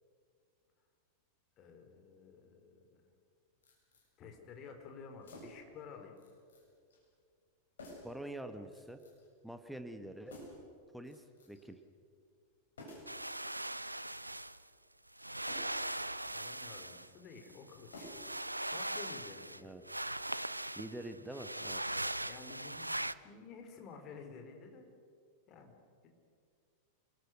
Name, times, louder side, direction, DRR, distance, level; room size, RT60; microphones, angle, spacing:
voice 1, 1.6-3.0 4.2-6.1 16.3-18.1 18.7-19.7 21.9-23.0 23.2-24.9 25.5-25.7 26.0-26.1, left 5 dB, 35° left, 4 dB, 4.2 m, -52 dB
sound 1, 3.6-4.1 5.2-5.7 6.2-6.7 6.9-7.0 7.8-8.2 8.7-9.3 10.3-10.7 11.1-11.7 12.8-13.2 13.8-14.5 15.4-15.9 16.3-16.8 17.9-18.4 18.7-18.8, left 1 dB, 65° left, 7.7 m, -53 dB
voice 2, 8.0-9.0 9.4-10.4 10.9-11.8 19.6-19.8 20.7-21.8, right 1 dB, ahead, 8 dB, 1.5 m, -45 dB
sound 2, 13.1-14.6 15.2-17.1 17.5-19.6 19.9-23.1, right 1 dB, 85° right, 0.5 m, -40 dB
29.0 x 20.5 x 6.5 m, 2.3 s
figure-of-eight pair, 90°, 0 cm